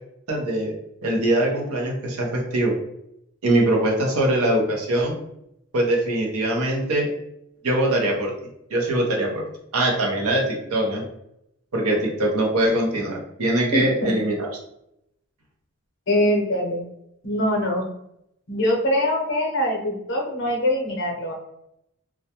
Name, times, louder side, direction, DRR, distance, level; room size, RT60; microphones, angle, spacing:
voice 1, 0.3-0.7 1.0-2.8 3.4-5.2 5.7-7.1 7.6-8.4 8.7-9.4 9.7-11.0 11.7-14.5, right 1 dB, 80° right, -1 dB, 0.7 m, -22 dB
voice 2, 13.7-14.1 16.1-16.8 17.2-17.9 18.5-21.3, left 1 dB, 50° left, 0 dB, 0.6 m, -23 dB
2.3 x 2.1 x 2.8 m, 0.78 s
head